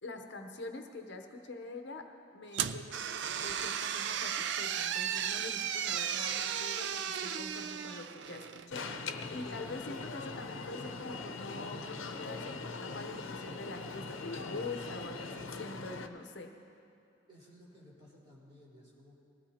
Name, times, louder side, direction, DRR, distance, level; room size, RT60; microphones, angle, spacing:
voice 1, 0.0-2.1 2.3-3.1 3.4-16.6, left 2 dB, 60° left, 4 dB, 0.8 m, -45 dB
sound 1, 2.5-8.7, right 8 dB, 65° right, 0.4 m, -35 dB
Alarm, 8.7-16.1, left 3 dB, 85° left, 0.7 m, -41 dB
voice 2, 17.3-19.2, equal, 25° right, -8 dB, 3.9 m, -57 dB
20.0 x 15.5 x 2.8 m, 2.6 s
head